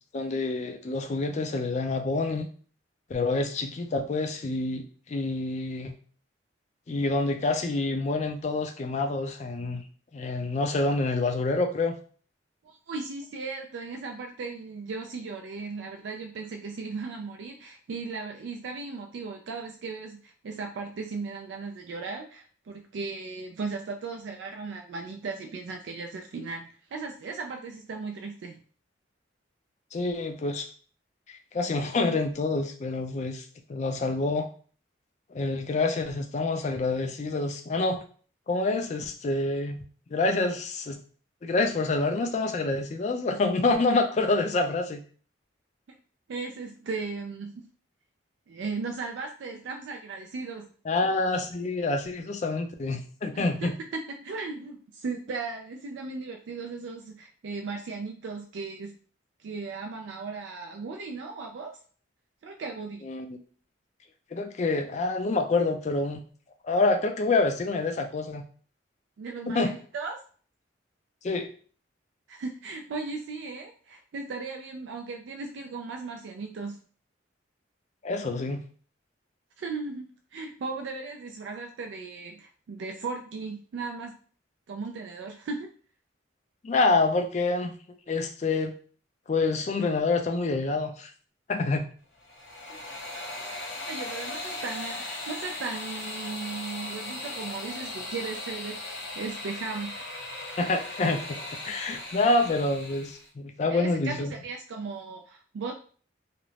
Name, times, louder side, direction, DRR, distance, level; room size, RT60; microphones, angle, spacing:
voice 1, 0.1-2.5 3.1-5.9 6.9-9.8 10.1-12.0 29.9-30.7 31.3-34.5 35.3-38.0 38.5-39.8 40.1-41.0 41.4-45.0 50.9-53.7 63.0-63.4 64.3-66.2 66.6-68.5 69.5-69.7 71.2-71.5 78.0-78.6 86.6-87.7 88.1-88.7 89.3-91.1 91.5-91.9 100.6-101.4 101.6-104.3, left 3 dB, 35° left, 5 dB, 0.3 m, -27 dB
voice 2, 12.6-28.6 46.3-47.7 48.5-50.7 53.3-53.7 54.1-58.9 59.4-61.8 62.4-63.1 69.2-70.2 72.3-76.8 79.6-84.1 84.7-85.7 93.9-100.0 103.7-105.7, right 4 dB, 70° right, 3 dB, 0.3 m, -37 dB
sound 1, 92.1-103.3, left 2 dB, 65° left, 1.0 m, -38 dB
2.5 x 2.0 x 3.1 m, 0.43 s
head